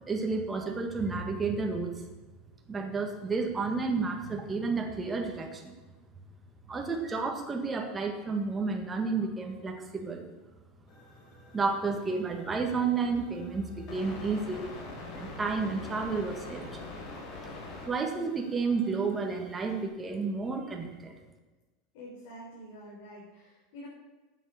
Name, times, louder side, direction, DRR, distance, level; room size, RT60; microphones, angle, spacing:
voice 1, 0.0-1.9 2.7-5.7 6.7-10.2 11.5-14.7 15.1-16.6 17.9-21.1, right 4 dB, 15° right, 2 dB, 1.6 m, -31 dB
sound 1, 10.9-19.8, left 2 dB, 45° left, 3.4 m, -45 dB
voice 2, 21.9-23.9, equal, 70° left, -5 dB, 3.8 m, -47 dB
9.4 x 8.4 x 6.3 m, 1.2 s
supercardioid pair, 150°, 0 cm